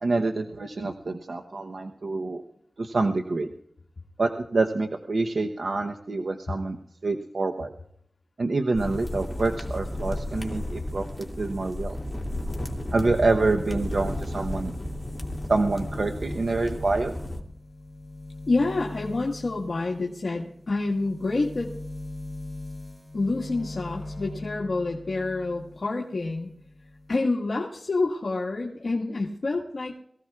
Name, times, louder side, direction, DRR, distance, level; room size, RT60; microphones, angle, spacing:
voice 1, 0.0-2.4 2.8-3.5 4.2-6.8 7.0-7.7 8.4-12.0 12.9-14.7 15.5-17.2, right 3 dB, 70° right, 4 dB, 0.8 m, -26 dB
sound 1, 8.7-17.4, left 1 dB, 15° left, 2.4 m, -33 dB
sound 2, 12.9-25.9 26.2-27.2, left 2 dB, ahead, 4.8 m, -41 dB
voice 2, 18.5-21.7 23.1-26.5 27.1-30.0, left 3 dB, 65° left, -2 dB, 1.5 m, -28 dB
22.5 x 16.0 x 2.4 m, 0.72 s
wide cardioid pair, 80°, 0 cm